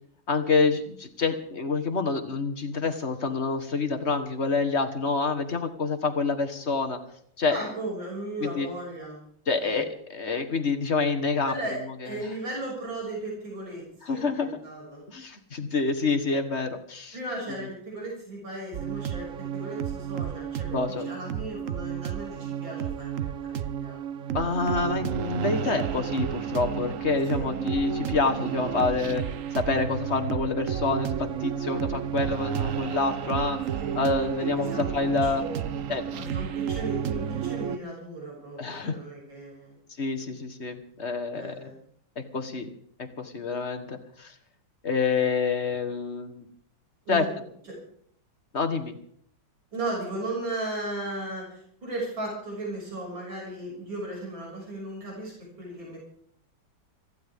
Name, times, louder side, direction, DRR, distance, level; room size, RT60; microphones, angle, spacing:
voice 1, 0.3-7.0 7.4-7.6 8.4-8.7 9.5-11.5 14.0-14.6 15.1-17.1 20.7-21.1 24.3-29.2 29.5-33.6 33.9-35.4 35.9-36.5 38.6-39.0 40.0-41.5 42.2-42.7 43.0-44.3 44.8-46.4 47.1-47.3 48.5-49.0, left 4 dB, 35° left, 6 dB, 1.6 m, -27 dB
voice 2, 7.5-9.2 9.6-9.8 11.4-11.8 12.0-15.0 17.1-24.0 27.3-27.5 33.8-34.0 34.6-34.9 35.2-35.8 36.2-39.8 41.3-41.8 47.1-47.3 47.7-47.8 49.7-56.0, right 2 dB, 80° right, -3 dB, 7.2 m, -36 dB
sound 1, 18.7-37.8, right 9 dB, 60° right, 0.9 m, -31 dB
25.5 x 15.0 x 3.6 m, 0.66 s
omnidirectional pair, 2.1 m